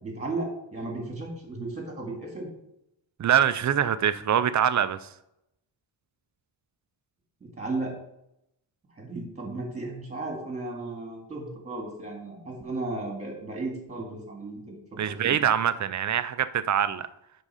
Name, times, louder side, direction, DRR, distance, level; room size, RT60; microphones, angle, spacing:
voice 1, 0.0-2.5 7.4-8.0 9.0-14.8 15.2-15.4, right 2 dB, 15° right, 2.0 m, -35 dB
voice 2, 3.2-5.1 15.0-17.1, right 9 dB, 40° right, 0.4 m, -24 dB
10.5 x 3.8 x 4.9 m
wide cardioid pair, 175°, 47 cm